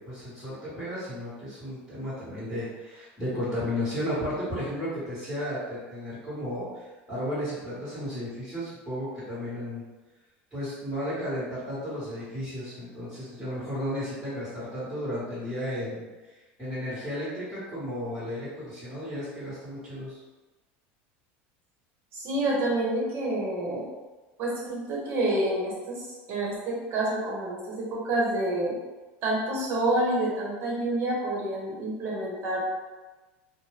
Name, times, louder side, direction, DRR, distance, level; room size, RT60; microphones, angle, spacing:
voice 1, 0.0-9.8 10.5-16.3 16.6-20.2, equal, 5° right, -14 dB, 1.3 m, -34 dB
voice 2, 22.1-23.9 24.4-28.7 29.2-32.6, right 1 dB, 45° right, -4 dB, 1.0 m, -28 dB
2.6 x 2.2 x 3.3 m, 1.2 s
supercardioid pair, 125°, 6 cm